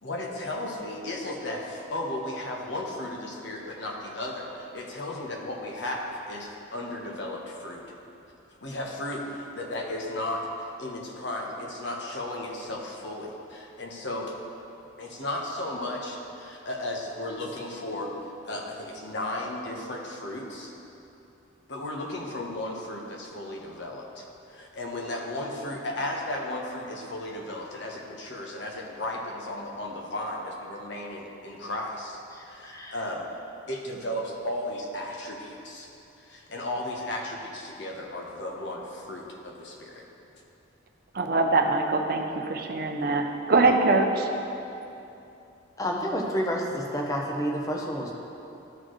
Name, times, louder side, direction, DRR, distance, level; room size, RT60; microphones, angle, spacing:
voice 1, 0.0-8.0 8.6-14.3 15.0-20.7 21.7-33.2 33.7-35.9 36.2-40.0, left 1 dB, 60° left, 0 dB, 1.0 m, -35 dB
voice 2, 32.6-32.9 45.8-48.1, equal, 15° left, -1 dB, 0.7 m, -29 dB
voice 3, 41.1-44.3, right 3 dB, 50° right, 4 dB, 0.6 m, -23 dB
13.0 x 4.3 x 3.1 m, 2.9 s
head